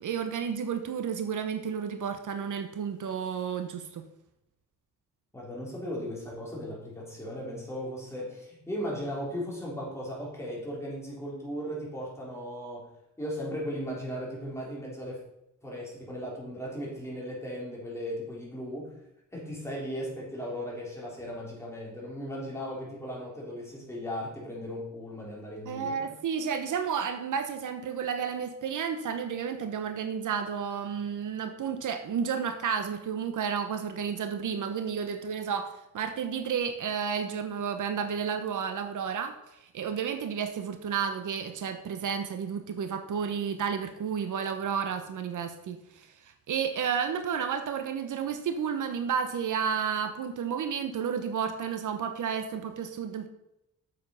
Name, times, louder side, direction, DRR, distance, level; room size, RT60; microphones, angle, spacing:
voice 1, 0.0-4.1 25.7-39.3 39.7-46.1 46.5-53.3, right 7 dB, 70° right, 8 dB, 1.0 m, -31 dB
voice 2, 5.3-12.9 13.2-15.2 15.6-18.9 19.3-26.0, equal, 10° left, -4 dB, 3.7 m, -37 dB
7.8 x 7.2 x 5.5 m, 0.85 s
cardioid pair, 120°, 32 cm